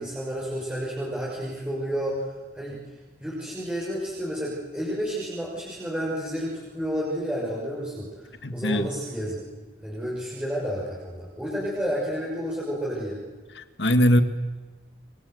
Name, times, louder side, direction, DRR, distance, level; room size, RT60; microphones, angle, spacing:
voice 1, 0.0-2.3 2.5-2.8 3.2-8.1 8.5-9.4 9.8-13.2, equal, 5° right, -6 dB, 6.3 m, -30 dB
voice 2, 8.4-8.9 13.6-14.2, equal, 90° left, 9 dB, 2.0 m, -21 dB
28.0 x 25.5 x 8.1 m, 1.3 s
head